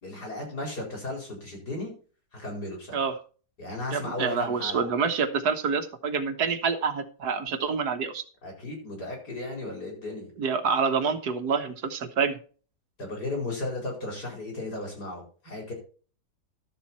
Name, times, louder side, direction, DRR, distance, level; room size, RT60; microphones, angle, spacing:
voice 1, 0.0-1.9 2.3-3.0 3.6-4.9 8.4-10.3 13.0-15.7, left 2 dB, 75° left, 0 dB, 5.1 m, -35 dB
voice 2, 3.9-8.2 10.4-12.4, right 5 dB, 70° right, 8 dB, 1.7 m, -27 dB
12.5 x 7.3 x 4.2 m, 0.39 s
omnidirectional pair, 1.8 m